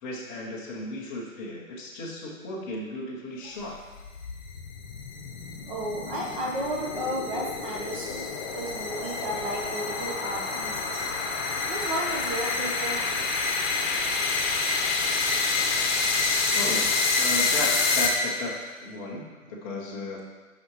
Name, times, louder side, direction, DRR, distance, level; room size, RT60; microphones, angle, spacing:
voice 1, 0.0-3.8 16.5-20.2, left 1 dB, 10° left, -5 dB, 0.5 m, -35 dB
sound 1, 3.7-18.6, left 4 dB, 35° left, 0.9 m, -28 dB
voice 2, 5.7-11.1 11.7-13.2, right 1 dB, 40° right, -2 dB, 1.0 m, -33 dB
9.2 x 5.8 x 3.0 m, 1.3 s
hypercardioid pair, 145°, 41 cm